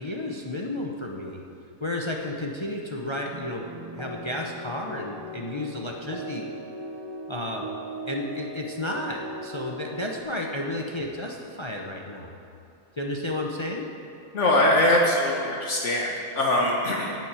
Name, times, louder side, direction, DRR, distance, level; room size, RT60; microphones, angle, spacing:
voice 1, 0.0-1.4 1.8-3.7 3.9-6.5 7.3-7.7 8.1-12.3 13.0-13.9, left 1 dB, 25° left, 0 dB, 0.6 m, -32 dB
sound 1, 3.3-10.2, right 1 dB, 40° right, 0.3 m, -39 dB
voice 2, 14.3-17.1, left 1 dB, 55° left, -2 dB, 1.4 m, -22 dB
9.1 x 7.6 x 8.8 m, 2.6 s
omnidirectional pair, 1.5 m